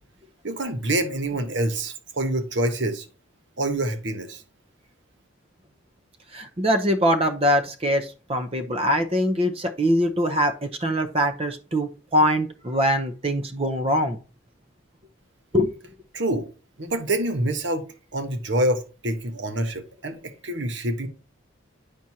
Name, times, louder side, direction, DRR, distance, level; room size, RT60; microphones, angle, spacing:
voice 1, 0.4-3.1 3.6-4.4 16.1-16.5 16.8-17.8 18.1-21.1, right 1 dB, 60° right, 1.2 m, -26 dB
voice 2, 6.3-14.2 15.5-15.8, equal, 30° right, 0.7 m, -23 dB
8.8 x 6.1 x 2.8 m
head